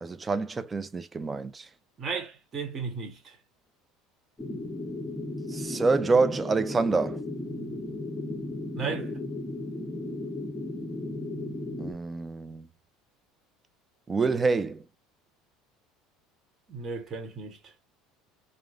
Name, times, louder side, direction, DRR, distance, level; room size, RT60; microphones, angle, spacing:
voice 1, 0.0-1.7 5.5-7.2 11.8-12.7 14.1-14.8, right 4 dB, 20° right, 0.3 m, -27 dB
voice 2, 2.0-3.4 8.7-9.1 16.7-17.7, right 5 dB, 35° right, 1.0 m, -35 dB
sound 1, 4.4-11.9, left 2 dB, 10° left, 1.2 m, -35 dB
3.1 x 2.0 x 2.4 m
supercardioid pair, 115°, 0 cm